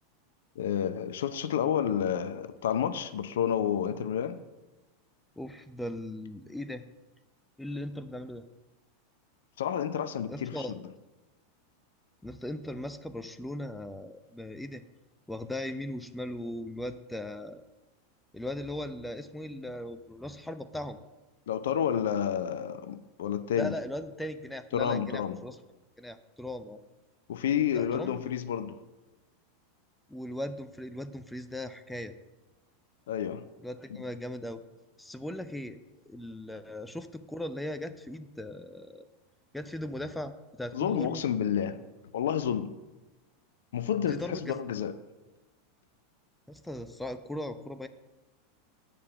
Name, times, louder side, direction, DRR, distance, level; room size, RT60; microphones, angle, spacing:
voice 1, 0.6-4.4 9.6-10.8 21.5-23.7 24.7-25.4 27.3-28.8 33.1-33.4 33.9-34.0 40.7-41.8 42.1-42.7 43.7-44.9, left 9 dB, 65° left, 0.5 m, -30 dB
voice 2, 5.4-6.9 7.6-8.5 10.3-10.7 12.2-14.8 15.3-17.6 18.3-21.0 23.6-25.6 26.0-26.8 27.7-28.2 30.1-32.1 33.6-34.6 35.0-35.8 36.1-39.1 39.5-41.2 44.1-44.6 46.5-47.9, left 1 dB, 5° left, 0.5 m, -38 dB
8.5 x 4.7 x 6.8 m
figure-of-eight pair, 85°, 0 cm